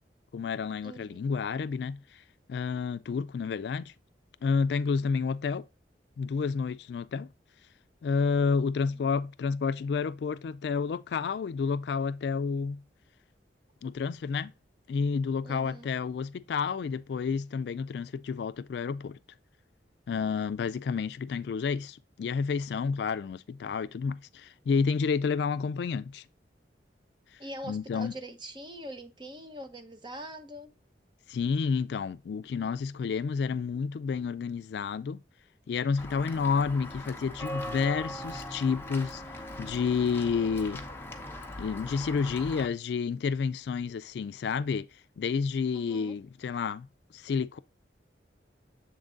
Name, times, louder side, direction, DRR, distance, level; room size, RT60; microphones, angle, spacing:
voice 1, 0.3-2.2 2.5-3.9 4.4-5.7 6.2-7.3 8.0-12.8 13.8-14.5 14.9-19.2 20.1-26.3 27.3-27.4 27.7-28.1 31.3-35.2 35.7-39.2 39.6-40.9 41.6-44.9 45.2-46.9 47.1-47.6, left 5 dB, 70° left, 0.3 m, -30 dB
voice 2, 0.8-1.2 15.4-15.9 27.4-30.7 45.7-46.2, right 1 dB, 25° right, 0.9 m, -43 dB
Walk footsteps / Bell, 36.0-42.7, left 1 dB, 15° left, 0.8 m, -40 dB
7.1 x 3.7 x 3.8 m
head